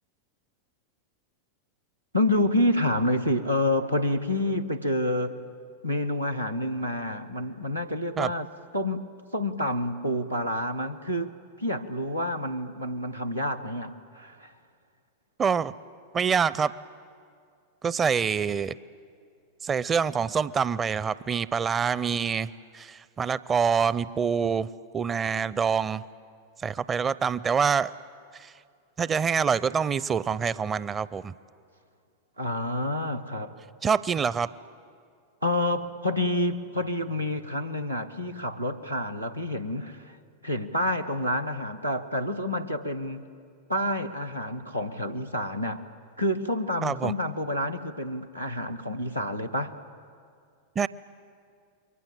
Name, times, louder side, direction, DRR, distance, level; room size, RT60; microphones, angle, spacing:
voice 1, 2.1-5.4 5.8-8.5 8.7-9.0 9.3-11.3 11.6-14.5 32.4-33.6 35.4-40.2 40.4-43.2 43.7-45.8 46.2-49.7, left 1 dB, 90° right, 4 dB, 1.1 m, -28 dB
voice 2, 15.4-15.7 16.1-16.7 17.8-18.8 19.6-24.7 24.9-26.0 26.6-27.9 28.3-28.5 29.0-31.3 33.8-34.5 46.8-47.1 50.8-50.9, right 6 dB, 20° right, 19 dB, 0.6 m, -26 dB
28.5 x 23.0 x 7.6 m, 2.3 s
figure-of-eight pair, 90°, 0 cm